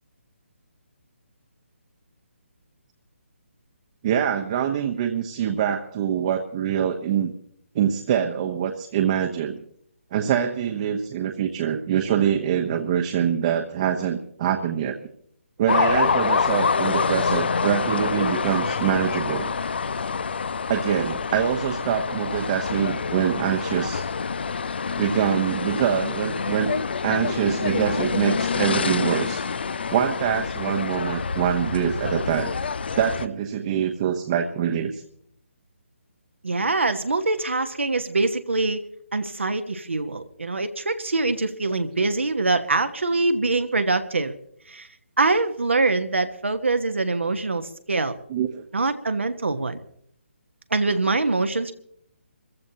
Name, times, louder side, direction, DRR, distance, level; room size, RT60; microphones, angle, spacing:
voice 1, 4.0-7.3 7.7-9.6 10.1-15.0 15.6-19.5 20.7-24.0 25.0-26.7 27.0-29.5 29.9-32.5 32.9-35.0 48.3-48.6, right 9 dB, 30° right, 4 dB, 1.1 m, -24 dB
sound 1, 15.7-33.3, left 5 dB, 55° left, 0.6 m, -26 dB
voice 2, 36.4-38.8 39.1-44.3 44.7-44.9 45.2-48.2 48.7-49.8 50.7-51.7, right 3 dB, 70° right, 7 dB, 1.3 m, -24 dB
26.5 x 15.0 x 2.9 m, 0.67 s
figure-of-eight pair, 140°, 7 cm